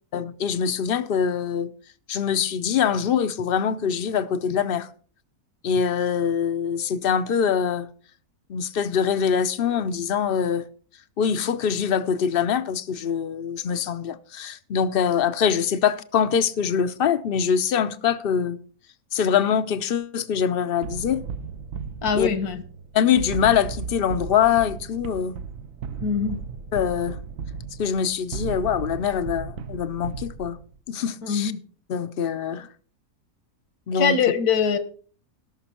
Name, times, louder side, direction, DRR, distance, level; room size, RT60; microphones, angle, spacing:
voice 1, 0.1-1.7 2.1-4.9 5.6-7.9 8.5-10.6 11.2-18.6 19.1-21.2 22.1-22.3 22.9-25.3 26.7-27.2 27.8-30.6 30.9-31.5 31.9-32.7 33.9-34.1, left 7 dB, 55° left, 0.7 m, -23 dB
sound 1, 20.8-30.8, right 6 dB, 65° right, 1.1 m, -35 dB
voice 2, 22.0-22.6 26.0-26.4 31.2-31.6 33.9-34.8, left 6 dB, 75° left, 1.8 m, -23 dB
18.0 x 6.0 x 4.3 m
omnidirectional pair, 1.6 m